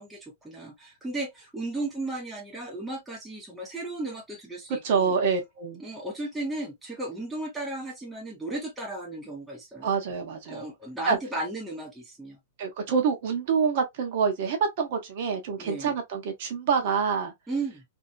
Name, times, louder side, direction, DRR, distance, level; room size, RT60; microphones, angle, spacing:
voice 1, 0.0-5.1 5.8-9.9 10.5-12.4 15.6-15.9 17.5-17.8, right 2 dB, 5° right, 0.6 m, -35 dB
voice 2, 4.8-5.8 9.8-10.7 11.1-11.2 12.6-17.3, right 6 dB, 45° right, 0.8 m, -26 dB
2.7 x 2.5 x 2.4 m
supercardioid pair, 175°, 0 cm